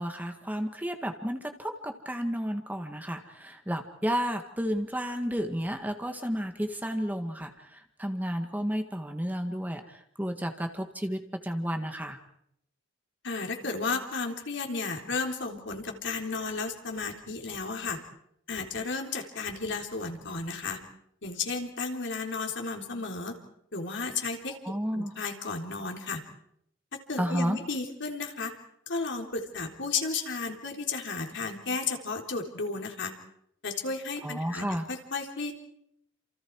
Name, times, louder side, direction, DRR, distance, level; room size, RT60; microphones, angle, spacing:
voice 1, 0.0-12.2 24.6-25.1 27.2-27.6 34.2-34.9, equal, 10° right, 5 dB, 1.8 m, -32 dB
voice 2, 13.2-18.0 18.5-20.8 21.2-23.3 23.7-24.6 24.9-26.2 27.1-28.5 28.9-33.1 33.6-35.5, left 4 dB, 65° left, 3 dB, 3.7 m, -33 dB
29.0 x 28.0 x 4.8 m, 0.74 s
head